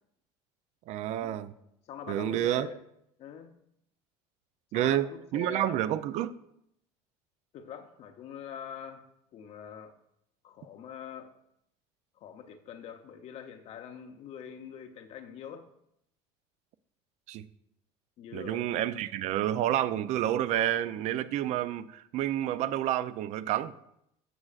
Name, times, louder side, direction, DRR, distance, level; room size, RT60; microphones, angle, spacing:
voice 1, 0.9-1.5 2.1-2.7 4.7-5.1 5.3-6.3 17.3-17.4 18.3-23.7, right 12 dB, 55° right, 0.5 m, -29 dB
voice 2, 1.9-2.8 3.2-3.6 4.7-5.8 7.5-9.9 10.4-11.4 12.2-15.7 18.2-18.7, left 7 dB, 50° left, 0.7 m, -44 dB
14.0 x 6.2 x 2.4 m
supercardioid pair, 115°, 14 cm